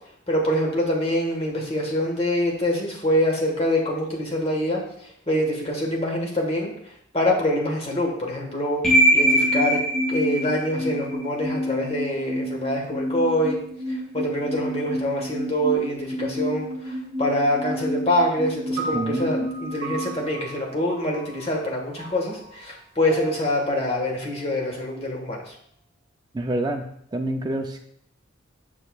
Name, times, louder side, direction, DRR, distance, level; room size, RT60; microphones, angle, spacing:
voice 1, 0.3-4.8 5.3-6.7 7.1-9.8 10.1-13.6 13.9-25.5, left 1 dB, 30° left, -1 dB, 1.6 m, -25 dB
sound 1, 8.8-20.9, equal, 5° left, 1.9 m, -26 dB
sound 2, 18.8-25.2, right 3 dB, 50° right, 1.3 m, -38 dB
voice 2, 18.9-19.5 26.3-26.9 27.1-27.8, right 1 dB, 20° right, 2 dB, 0.4 m, -27 dB
8.3 x 6.5 x 2.4 m, 0.67 s
head